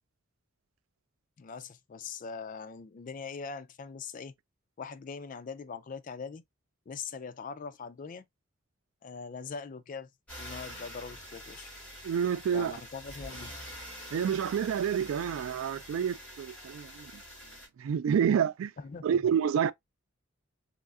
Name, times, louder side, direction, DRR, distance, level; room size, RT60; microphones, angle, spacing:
voice 1, 1.4-4.3 4.8-6.4 6.9-8.3 9.0-10.1 10.4-11.7 12.5-13.5 18.8-19.2, left 5 dB, 40° left, 0.3 m, -41 dB
sound 1, 10.3-17.7, equal, 5° left, 2.2 m, -46 dB
voice 2, 12.0-12.7 14.1-17.2 17.8-18.7 19.0-19.7, right 8 dB, 80° right, 0.3 m, -28 dB
3.7 x 3.2 x 2.3 m
head